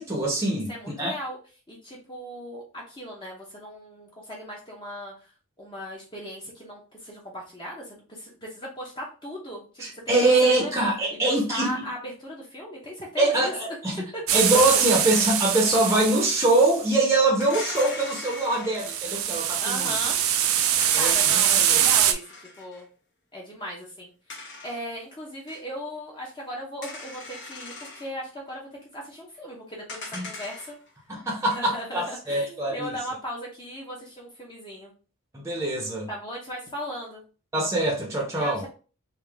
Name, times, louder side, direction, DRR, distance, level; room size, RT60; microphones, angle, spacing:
voice 1, 0.0-0.7 1.0-1.1 9.8-11.9 13.2-14.0 14.3-19.9 20.9-21.9 30.1-30.2 31.1-32.9 35.3-36.1 37.5-38.6, right 2 dB, 15° right, 0.7 m, -23 dB
voice 2, 0.5-1.4 1.7-5.3 5.6-10.7 11.2-14.6 19.6-20.2 20.9-22.9 23.3-30.7 31.5-34.9 36.1-37.2 38.4-38.7, equal, 20° left, 0.9 m, -37 dB
sound 1, 14.3-16.8 18.8-22.1, right 10 dB, 85° right, 0.5 m, -23 dB
sound 2, 14.9-19.1 20.8-22.8 24.3-25.0 25.5-25.6 26.8-28.1 29.9-30.9 31.3-31.8, left 2 dB, 55° left, 1.2 m, -40 dB
3.7 x 2.7 x 3.3 m
head